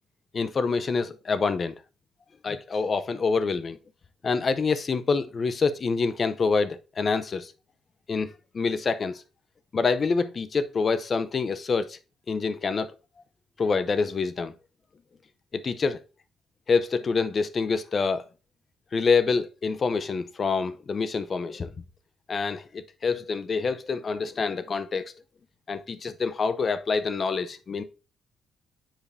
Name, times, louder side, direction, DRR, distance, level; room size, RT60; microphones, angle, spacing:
voice 1, 0.3-1.8 2.4-3.8 4.2-7.5 8.1-8.3 8.5-9.2 9.7-12.0 12.3-12.9 13.6-14.5 15.5-16.0 16.7-18.2 18.9-21.7 22.3-25.0 25.7-27.8, left 4 dB, 40° left, 0.6 m, -26 dB
7.4 x 5.1 x 2.6 m
cardioid pair, 90°, 0 cm